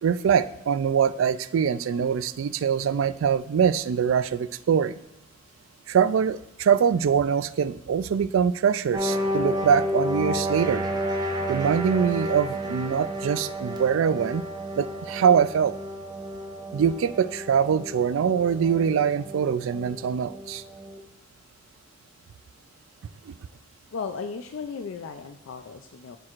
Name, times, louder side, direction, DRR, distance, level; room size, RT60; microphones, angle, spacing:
voice 1, 0.0-4.9 5.9-10.8 11.5-14.4 14.7-15.7 16.7-20.6 23.3-23.4, right 7 dB, 85° right, 15 dB, 0.3 m, -23 dB
sound 1, 8.9-21.0, equal, 20° right, 0.8 m, -31 dB
voice 2, 23.9-26.2, left 5 dB, 85° left, 7 dB, 0.4 m, -35 dB
13.5 x 4.6 x 2.5 m, 0.84 s
head